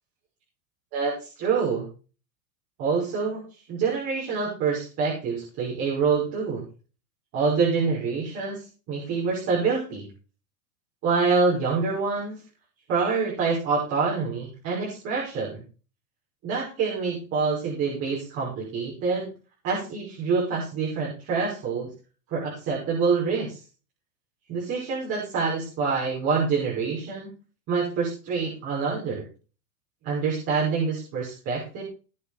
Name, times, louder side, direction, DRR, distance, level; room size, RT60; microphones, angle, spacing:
voice 1, 0.9-1.9 2.8-3.4 3.7-6.7 7.3-10.1 11.0-12.4 12.9-15.6 16.4-19.3 19.6-21.9 22.3-23.6 24.5-27.3 27.7-29.2 30.0-31.8, right 5 dB, 30° right, -6 dB, 5.8 m, -26 dB
19.0 x 7.5 x 4.4 m, 0.36 s
supercardioid pair, 175°, 45 cm